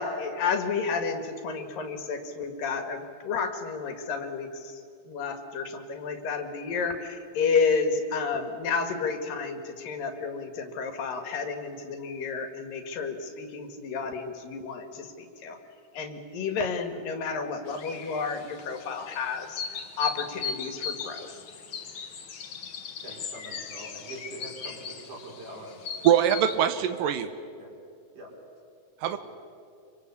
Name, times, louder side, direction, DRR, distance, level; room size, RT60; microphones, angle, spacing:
voice 1, 0.0-15.6 15.9-21.4, left 5 dB, 75° left, 7 dB, 3.7 m, -31 dB
sound 1, 17.7-26.6, left 6 dB, 45° left, 1.8 m, -38 dB
voice 2, 23.0-26.2 26.5-26.6 27.6-27.7 28.1-28.3 29.0-29.2, right 1 dB, 60° right, -1 dB, 6.6 m, -44 dB
voice 3, 26.0-27.3 29.0-29.2, right 10 dB, 75° right, 10 dB, 2.5 m, -23 dB
26.0 x 25.0 x 8.4 m, 2.4 s
omnidirectional pair, 4.0 m